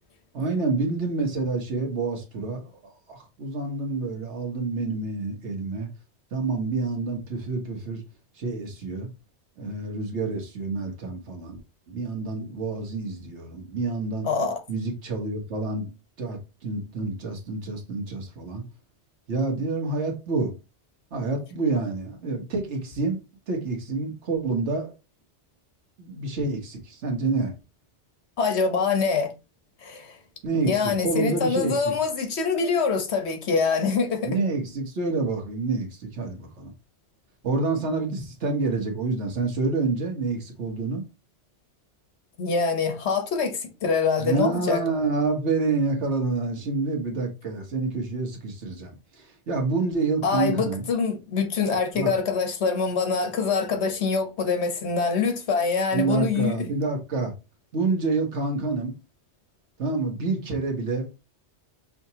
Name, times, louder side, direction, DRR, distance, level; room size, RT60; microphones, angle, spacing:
voice 1, 0.3-5.9 6.3-8.0 8.4-9.1 9.6-11.6 11.9-14.3 14.7-15.9 16.2-18.7 19.3-20.5 21.1-23.2 23.5-24.9 26.0-27.6 30.4-31.8 34.2-36.7 37.4-41.0 44.2-50.8 51.9-52.1 55.9-57.3 57.7-59.0 59.8-61.1, right 3 dB, 80° right, 1.4 m, -28 dB
voice 2, 28.4-29.3 29.8-30.2 30.6-34.4 42.4-44.8 50.2-56.7, left 5 dB, 70° left, 1.2 m, -25 dB
5.7 x 2.5 x 2.8 m
omnidirectional pair, 1.2 m